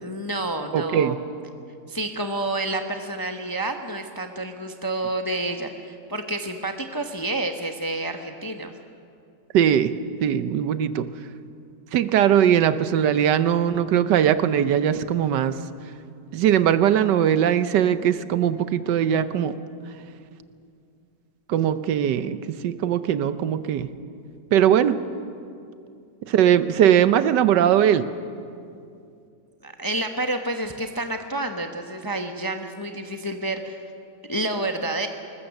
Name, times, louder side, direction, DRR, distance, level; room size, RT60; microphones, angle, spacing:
voice 1, 0.0-1.2 1.9-8.7 29.6-33.8 34.3-35.1, right 2 dB, 20° left, 5 dB, 0.7 m, -29 dB
voice 2, 0.7-1.2 9.5-9.9 10.2-11.1 11.9-15.6 16.3-19.6 21.5-23.9 24.5-25.0 26.3-28.1, right 9 dB, 80° right, 13 dB, 1.4 m, -20 dB
21.0 x 20.0 x 7.1 m, 2.5 s
omnidirectional pair, 1.9 m